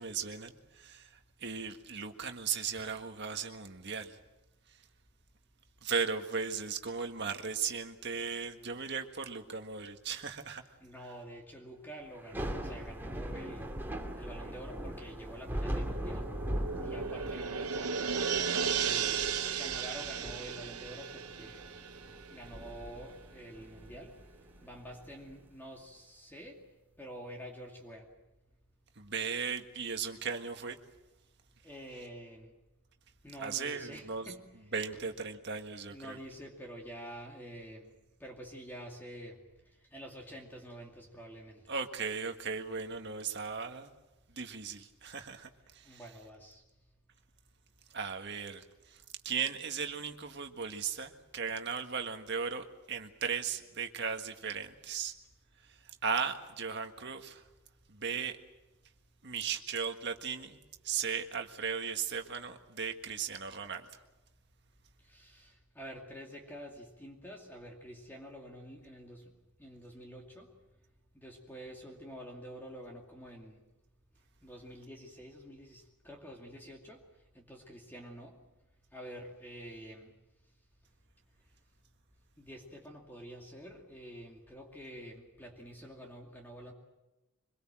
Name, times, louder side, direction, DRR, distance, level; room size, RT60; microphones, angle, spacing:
voice 1, 0.0-4.2 5.8-10.6 29.0-30.8 33.4-34.3 34.7-36.2 41.7-43.9 44.3-46.0 47.9-55.1 55.6-57.4 57.9-58.4 59.2-60.6 60.8-63.9, right 6 dB, 50° right, 5 dB, 1.7 m, -37 dB
voice 2, 10.8-13.7 14.2-16.3 16.8-18.3 18.7-19.2 19.6-21.6 22.3-24.1 24.6-26.6 27.0-28.0 31.6-32.5 33.2-34.4 35.9-37.9 38.2-39.4 39.9-41.6 45.9-46.6 65.1-69.2 69.6-70.5 71.1-73.6 74.4-77.0 77.3-78.3 78.9-80.1 82.4-86.7, equal, 10° left, 0 dB, 2.5 m, -48 dB
Thunder / Rain, 12.2-25.3, right 1 dB, 10° right, 2.7 m, -41 dB
sound 1, 15.7-22.7 23.0-23.1, right 6 dB, 85° right, 1.0 m, -35 dB
24.5 x 22.0 x 7.6 m, 1.0 s
head